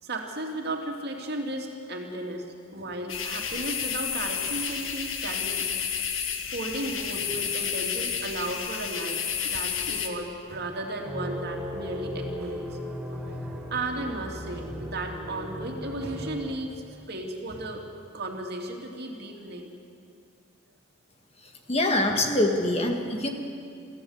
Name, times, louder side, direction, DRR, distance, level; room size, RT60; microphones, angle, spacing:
voice 1, 0.0-2.5 2.7-5.6 6.5-12.8 13.1-17.8 18.1-19.7, right 1 dB, 55° right, 1 dB, 2.6 m, -35 dB
sound 1, 3.1-10.1, left 7 dB, 85° left, 1.8 m, -31 dB
sound 2, 11.1-16.6, equal, 5° right, 2.0 m, -36 dB
voice 2, 21.7-23.3, left 1 dB, 30° left, 4 dB, 1.7 m, -24 dB
24.5 x 14.5 x 8.0 m, 2.4 s
head